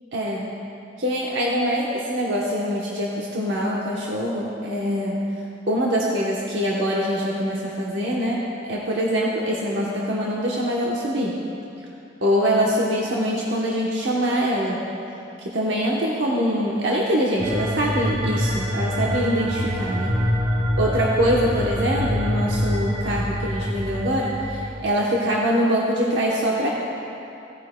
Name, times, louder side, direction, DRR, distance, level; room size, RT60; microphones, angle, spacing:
voice 1, 0.1-0.5 1.0-5.2 5.7-11.4 12.2-14.8 15.4-20.1 20.8-26.7, equal, 80° right, -4 dB, 1.0 m, -24 dB
sound 1, 17.4-24.7, equal, 45° right, 1.6 m, -25 dB
16.5 x 9.5 x 2.2 m, 2.8 s
head